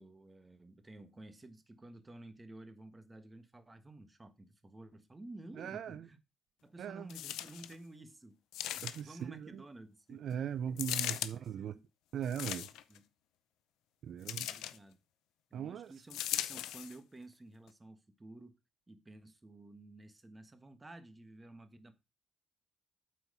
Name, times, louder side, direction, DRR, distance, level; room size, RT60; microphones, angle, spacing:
voice 1, 0.0-6.2 6.6-8.4 8.7-10.2 11.1-11.9 12.9-13.0 14.2-15.0 15.5-18.6 18.9-21.9, right 2 dB, 20° right, 1.3 m, -53 dB
voice 2, 5.6-6.0 6.8-7.1 8.8-9.6 10.1-11.7 12.1-12.7 14.0-14.5 15.5-15.9, right 9 dB, 70° right, 0.4 m, -39 dB
sound 1, 7.1-7.7 8.5-9.2 10.8-11.3 12.2-13.0 14.3-14.8 16.1-17.0 17.7-17.8, left 13 dB, 90° left, 0.5 m, -38 dB
8.2 x 4.6 x 5.4 m
cardioid pair, 90°, 0 cm